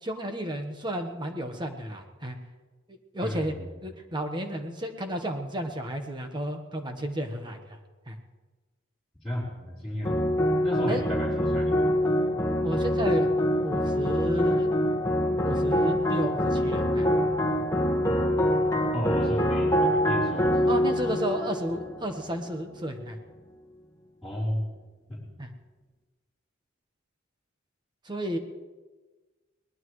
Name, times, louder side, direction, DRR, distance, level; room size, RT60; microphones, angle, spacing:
voice 1, 0.0-2.4 3.1-3.6 3.8-7.8 8.1-8.2 10.9-11.0 12.6-13.3 13.6-14.7 15.3-17.1 20.7-23.2 25.4-25.5 28.0-28.4, equal, 25° right, 4 dB, 1.3 m, -32 dB
voice 2, 3.2-3.7 9.2-10.3 10.6-11.7 18.9-20.7 24.2-24.6 25.1-25.2, equal, ahead, -9 dB, 4.1 m, -33 dB
sound 1, 10.0-22.5, equal, 15° left, 1.6 m, -25 dB
22.0 x 19.5 x 3.2 m, 1.3 s
head